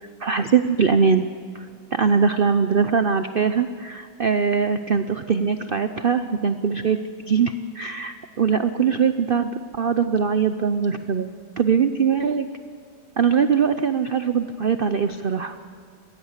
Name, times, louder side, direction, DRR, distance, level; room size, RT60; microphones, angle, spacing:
voice 1, 0.2-1.3 1.5-7.0 7.3-11.3 11.6-12.5 13.2-15.5, right 6 dB, 80° right, 9 dB, 0.5 m, -21 dB
21.5 x 16.5 x 8.1 m, 2.3 s
omnidirectional pair, 1.9 m